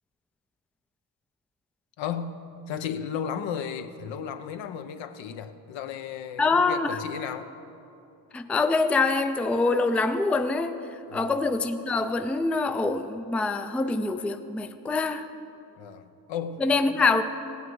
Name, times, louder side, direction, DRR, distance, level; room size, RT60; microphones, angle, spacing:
voice 1, 2.0-7.5 11.1-11.4 15.8-16.6, left 7 dB, 70° left, 9 dB, 0.8 m, -34 dB
voice 2, 6.4-7.0 8.3-10.8 11.1-15.3 16.6-17.2, left 3 dB, 5° left, 9 dB, 0.4 m, -25 dB
16.0 x 8.5 x 4.7 m, 2.8 s
cardioid pair, 75°, 46 cm